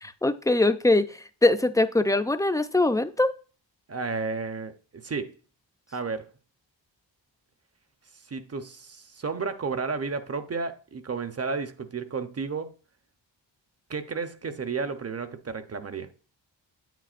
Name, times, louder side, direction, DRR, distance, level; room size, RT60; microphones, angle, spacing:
voice 1, 0.0-1.1 1.4-3.3, left 2 dB, 10° left, 0.5 m, -22 dB
voice 2, 3.9-5.4 5.9-6.3 8.1-12.7 13.9-16.1, right 4 dB, 30° right, 0.9 m, -32 dB
9.3 x 9.1 x 2.5 m
wide cardioid pair, 130°, 45 cm